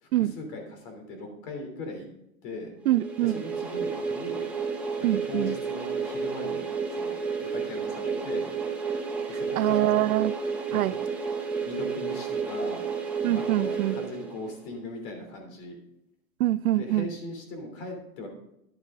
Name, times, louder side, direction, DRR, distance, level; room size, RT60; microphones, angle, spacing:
voice 1, 0.4-2.1 2.4-2.7 3.2-4.5 5.0-6.6 6.9-8.5 9.3-10.0 10.7-10.9 11.6-12.9 13.3-15.8 16.7-18.3, left 2 dB, 40° left, 3.3 m, -39 dB
sound 1, 2.9-14.7, right 5 dB, 5° right, 0.7 m, -31 dB
voice 2, 2.9-3.4 5.0-5.6 9.6-10.3 10.7-11.0 13.2-14.0 16.4-17.1, right 15 dB, 80° right, 0.5 m, -24 dB
12.0 x 8.3 x 3.8 m
supercardioid pair, 160°, 42 cm